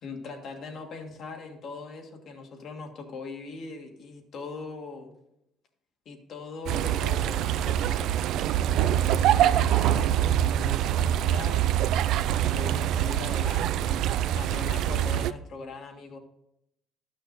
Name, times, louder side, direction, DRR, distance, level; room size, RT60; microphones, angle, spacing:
voice 1, 0.0-5.1 6.1-11.7 12.3-14.1 14.3-16.2, left 4 dB, 55° left, 2 dB, 1.7 m, -41 dB
sound 1, 6.7-15.3, right 11 dB, 70° right, 0.3 m, -24 dB
12.0 x 6.3 x 4.0 m, 0.81 s
cardioid pair, 115°, 0 cm